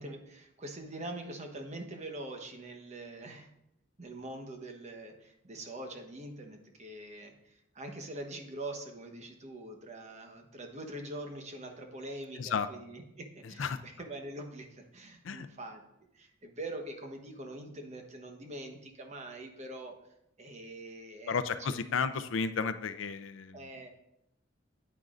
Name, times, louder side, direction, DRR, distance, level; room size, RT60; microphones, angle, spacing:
voice 1, 0.0-3.5 4.0-15.8 16.1-20.0 20.4-21.4 21.7-21.8 23.5-23.9, right 1 dB, 35° right, 4 dB, 1.0 m, -44 dB
voice 2, 21.3-23.7, left 5 dB, 70° left, 11 dB, 0.5 m, -33 dB
9.4 x 9.0 x 2.5 m, 0.80 s
head